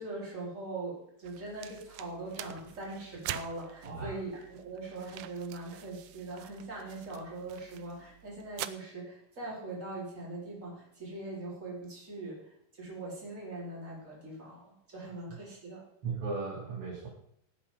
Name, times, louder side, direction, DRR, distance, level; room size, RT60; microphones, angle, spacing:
voice 1, 0.0-12.4 12.8-15.8, right 2 dB, 20° right, -4 dB, 4.8 m, -41 dB
sound 1, 1.2-8.7, right 14 dB, 85° right, 1.7 m, -45 dB
voice 2, 3.8-4.2 16.0-17.1, right 4 dB, 40° right, -4 dB, 3.4 m, -36 dB
18.0 x 8.4 x 5.2 m, 0.72 s
omnidirectional pair, 4.3 m